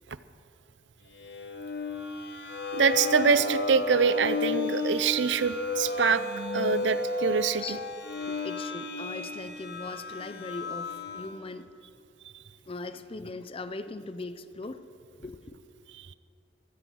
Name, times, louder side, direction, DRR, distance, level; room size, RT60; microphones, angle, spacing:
sound 1, 1.2-11.4, left 3 dB, 65° left, 1.5 m, -33 dB
voice 1, 2.7-6.2 6.5-7.8, right 5 dB, 85° right, 0.6 m, -25 dB
voice 2, 8.2-11.7 12.7-14.9 15.2-15.6, left 3 dB, 30° left, 0.6 m, -40 dB
16.5 x 13.5 x 6.3 m
head